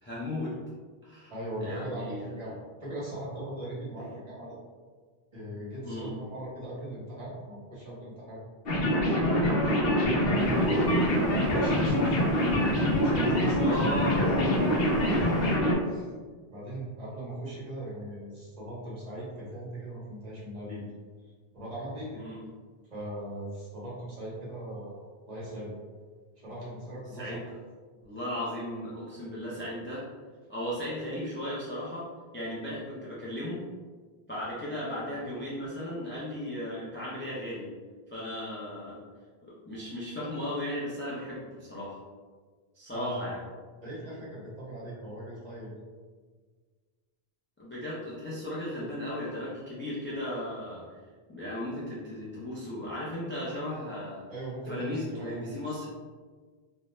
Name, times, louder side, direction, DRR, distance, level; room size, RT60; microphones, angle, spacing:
voice 1, 0.0-0.5 1.0-1.3 1.6-2.3 5.8-6.1 9.6-9.8 13.6-14.2 22.2-22.4 27.2-27.4 28.0-30.0 30.5-32.1 32.3-33.6 34.3-37.7 38.1-39.0 39.4-42.0 42.7-43.4 47.6-50.9 51.3-54.2 54.7-55.9, left 1 dB, 20° left, -8 dB, 0.3 m, -36 dB
voice 2, 1.3-2.5 2.8-4.6 5.3-8.4 8.7-9.5 10.0-12.2 13.0-13.9 14.2-14.7 15.0-15.5 15.9-16.1 16.5-20.9 21.5-22.2 22.9-25.7 26.4-27.4 42.9-43.2 43.8-45.8 54.3-55.9, right 1 dB, 45° right, -8 dB, 1.1 m, -39 dB
sound 1, 8.7-15.7, equal, 70° left, 0.8 m, -25 dB
sound 2, 10.3-15.6, right 2 dB, 70° right, 0.8 m, -43 dB
2.6 x 2.1 x 3.1 m, 1.5 s
omnidirectional pair, 1.0 m